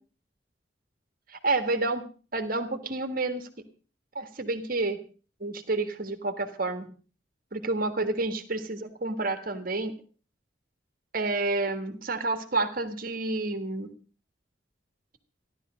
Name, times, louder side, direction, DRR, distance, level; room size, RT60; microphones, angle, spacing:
voice 1, 1.3-2.0 2.3-3.5 4.1-5.0 5.4-6.9 7.5-9.9 11.1-13.9, right 2 dB, 50° right, 8 dB, 1.7 m, -29 dB
15.5 x 12.0 x 6.3 m, 0.39 s
head